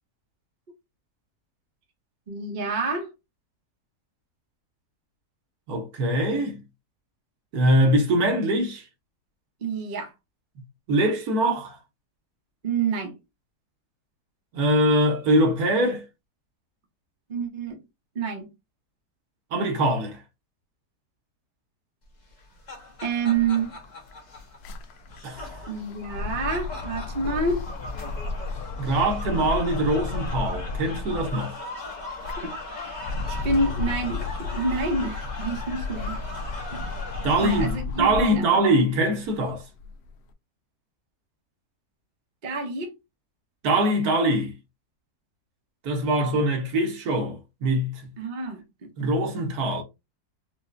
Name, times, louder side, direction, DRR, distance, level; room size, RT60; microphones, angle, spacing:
voice 1, 2.3-3.1 9.6-10.1 12.6-13.2 17.3-17.8 18.1-18.5 23.0-23.7 25.7-27.6 32.4-33.0 33.3-36.2 36.7-37.0 37.4-38.6 42.4-43.0 48.2-49.1, right 3 dB, 40° right, 0.8 m, -28 dB
voice 2, 5.7-6.6 7.5-8.8 10.9-11.7 14.5-16.0 19.5-20.2 25.2-25.5 28.8-31.6 37.2-39.6 43.6-44.5 45.8-48.1 49.0-49.8, right 1 dB, 70° right, 1.4 m, -23 dB
sound 1, 22.3-37.7, left 2 dB, 35° left, 0.8 m, -38 dB
sound 2, 23.3-23.4 23.7-31.5 32.0-38.5 39.0-40.1, left 4 dB, 80° left, 0.5 m, -34 dB
4.8 x 2.2 x 2.6 m
omnidirectional pair, 1.7 m